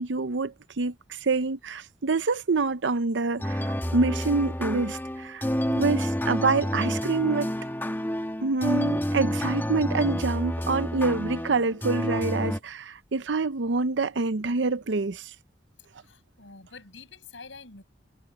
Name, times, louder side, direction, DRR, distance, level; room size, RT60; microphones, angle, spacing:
voice 1, 0.0-7.5 8.4-15.3, right 3 dB, 70° right, 0.7 m, -27 dB
sound 1, 3.4-12.6, equal, 10° left, 1.8 m, -29 dB
voice 2, 16.0-17.8, left 4 dB, 85° left, 7.4 m, -47 dB
head